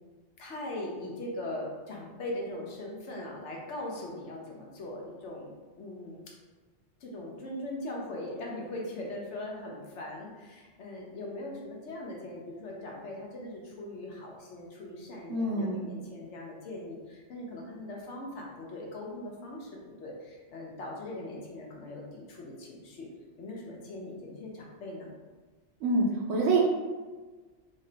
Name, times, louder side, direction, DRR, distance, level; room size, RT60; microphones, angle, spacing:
voice 1, 0.4-6.3 7.0-19.7 20.0-23.1 23.4-25.1, left 1 dB, 75° left, -2 dB, 1.1 m, -40 dB
voice 2, 15.3-15.8 25.8-26.6, right 2 dB, 85° right, -2 dB, 0.9 m, -26 dB
3.6 x 2.2 x 3.8 m, 1.3 s
omnidirectional pair, 1.2 m